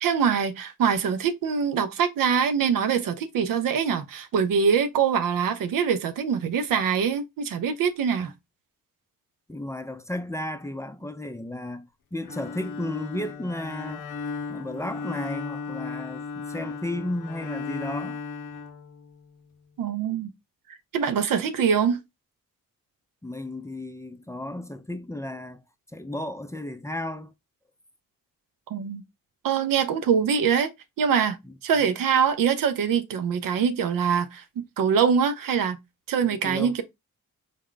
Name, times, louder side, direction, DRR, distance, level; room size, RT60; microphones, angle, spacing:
voice 1, 0.0-8.3 19.8-20.3 20.7-22.0 28.7-29.0 29.4-30.7 31.0-31.4 31.6-34.4 34.8-35.8 36.1-36.8, right 7 dB, 85° right, 0.6 m, -24 dB
voice 2, 9.5-14.1 14.5-18.2 23.2-25.6 25.9-27.3 31.4-31.5 36.2-36.8, left 1 dB, 10° left, 0.4 m, -34 dB
Bowed string instrument, 12.2-19.4, left 5 dB, 70° left, 0.6 m, -36 dB
3.5 x 2.1 x 3.7 m
cardioid pair, 55°, 33 cm